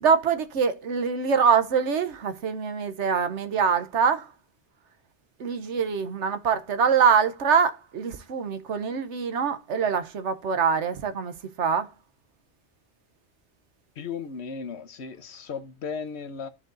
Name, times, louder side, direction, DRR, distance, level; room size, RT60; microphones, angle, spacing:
voice 1, 0.0-4.3 5.4-11.9, right 6 dB, 85° right, 1.2 m, -24 dB
voice 2, 14.0-16.5, left 5 dB, 70° left, 1.2 m, -35 dB
14.0 x 4.8 x 2.6 m
omnidirectional pair, 1.2 m